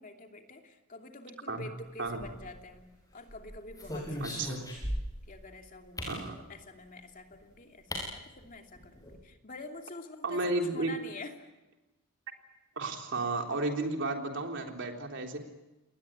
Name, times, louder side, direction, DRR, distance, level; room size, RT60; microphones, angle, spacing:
voice 1, 0.0-2.9 3.1-4.5 5.3-11.3, left 2 dB, 40° left, 4 dB, 2.8 m, -47 dB
sound 1, 2.1-2.8 3.3-5.3 6.0-6.2 7.3-7.4 7.9-8.1 8.4-8.5 8.8-9.2, equal, 15° left, 7.7 m, -38 dB
voice 2, 4.2-4.6 6.1-6.4 10.2-10.9 12.8-15.4, right 2 dB, 55° right, 3 dB, 3.6 m, -33 dB
29.0 x 20.5 x 8.9 m, 1.0 s
head